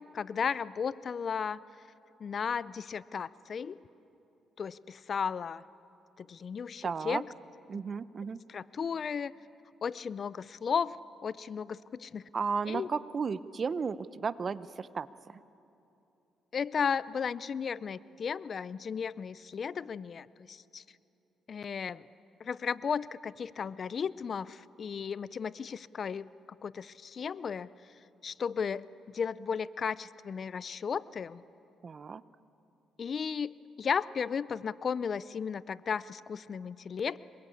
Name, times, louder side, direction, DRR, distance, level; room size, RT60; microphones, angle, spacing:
voice 1, 0.0-1.6 2.2-3.8 4.6-5.6 6.2-7.3 8.5-9.3 9.8-11.0 11.2-12.2 12.7-12.9 16.5-20.8 21.5-22.1 22.4-26.3 26.6-27.7 28.2-31.4 33.0-37.2, left 6 dB, 50° left, 19 dB, 0.5 m, -34 dB
voice 2, 6.8-7.2 7.7-8.4 12.3-15.4 31.8-32.2, right 5 dB, 40° right, 16 dB, 0.7 m, -34 dB
26.0 x 22.5 x 8.5 m, 2.8 s
cardioid pair, 90°, 0 cm